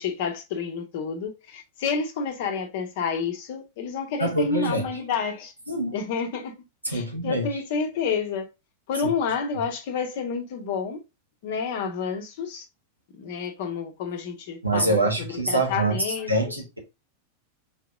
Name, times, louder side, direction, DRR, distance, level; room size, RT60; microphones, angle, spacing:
voice 1, 0.0-5.5 5.9-6.5 6.9-8.5 8.9-11.0 11.4-12.6 13.1-16.3, left 5 dB, 50° left, 0.9 m, -29 dB
voice 2, 4.2-4.9 5.7-5.9 6.8-7.5 14.6-16.8, right 2 dB, 85° right, 1.1 m, -25 dB
4.1 x 3.0 x 3.5 m
figure-of-eight pair, 90°, 0 cm